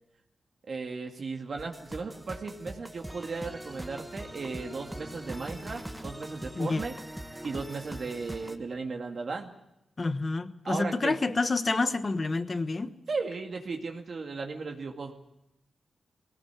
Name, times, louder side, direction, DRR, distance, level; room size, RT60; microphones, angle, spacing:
voice 1, 0.7-6.9 7.4-9.5 10.7-11.2 13.1-15.1, right 4 dB, 55° right, 2.1 m, -36 dB
sound 1, 1.6-8.6, right 1 dB, 10° right, 1.5 m, -42 dB
voice 2, 10.0-12.9, left 3 dB, 35° left, 1.2 m, -28 dB
20.5 x 18.0 x 8.3 m
wide cardioid pair, 115°, 0 cm